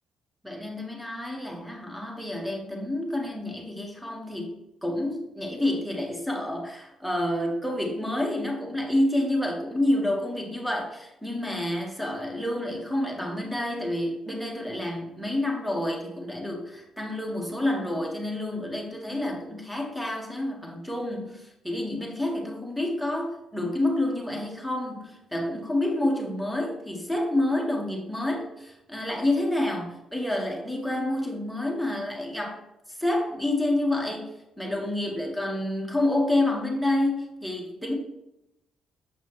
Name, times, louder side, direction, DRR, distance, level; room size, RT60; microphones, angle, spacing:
voice 1, 0.4-32.6 33.0-37.9, left 1 dB, ahead, 0 dB, 1.5 m, -28 dB
7.4 x 5.3 x 3.1 m, 0.90 s
cardioid pair, 90°, 0 cm